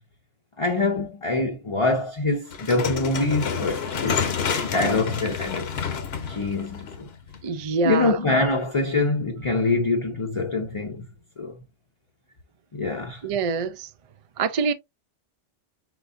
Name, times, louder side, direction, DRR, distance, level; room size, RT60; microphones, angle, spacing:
voice 1, 0.6-4.3 4.7-5.7 6.3-7.1 7.8-11.1 11.4-11.5 12.7-13.2, left 2 dB, 35° left, 0.6 m, -24 dB
sound 1, 2.5-7.6, left 6 dB, 65° left, 1.0 m, -29 dB
voice 2, 7.4-8.2 13.2-13.9 14.4-14.7, right 4 dB, 55° right, 0.3 m, -25 dB
4.5 x 4.0 x 2.5 m
omnidirectional pair, 1.2 m